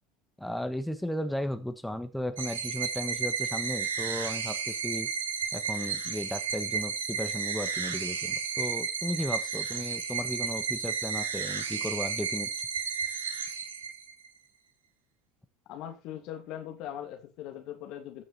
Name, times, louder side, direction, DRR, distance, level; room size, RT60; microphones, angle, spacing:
voice 1, 0.4-5.1 5.5-12.5, left 1 dB, 5° left, 1.5 m, -35 dB
sound 1, 2.4-14.3, right 6 dB, 90° right, 1.3 m, -33 dB
voice 2, 15.7-18.2, left 11 dB, 60° left, 2.6 m, -40 dB
14.0 x 6.4 x 4.3 m
hypercardioid pair, 75°, 0 cm